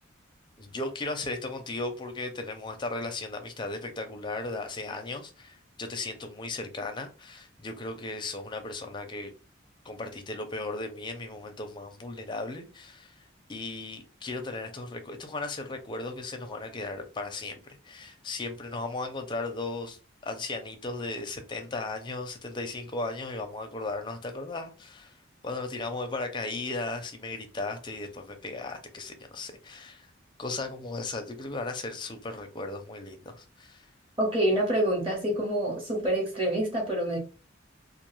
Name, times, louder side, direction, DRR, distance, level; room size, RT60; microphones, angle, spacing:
voice 1, 0.6-9.3 9.8-13.2 13.5-17.6 17.8-25.2 25.4-30.1 30.4-33.9, left 2 dB, 25° left, 0.5 m, -36 dB
voice 2, 34.2-37.2, right 1 dB, 30° right, 1.0 m, -27 dB
2.4 x 2.3 x 3.0 m
head